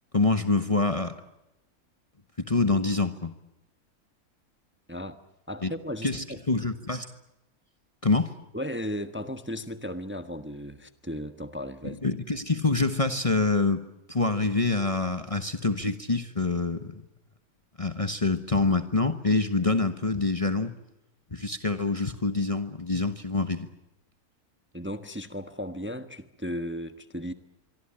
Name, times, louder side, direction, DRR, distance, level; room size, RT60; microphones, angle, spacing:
voice 1, 0.1-1.2 2.4-3.3 5.6-5.7 6.0-7.1 8.0-8.3 12.0-13.8 14.1-17.0 17.8-20.7 21.3-23.7, left 3 dB, 25° left, 9 dB, 1.3 m, -26 dB
voice 2, 5.5-6.4 8.5-12.0 24.7-27.3, equal, 10° right, 10 dB, 1.2 m, -35 dB
25.5 x 23.5 x 8.8 m, 0.88 s
omnidirectional pair, 1.6 m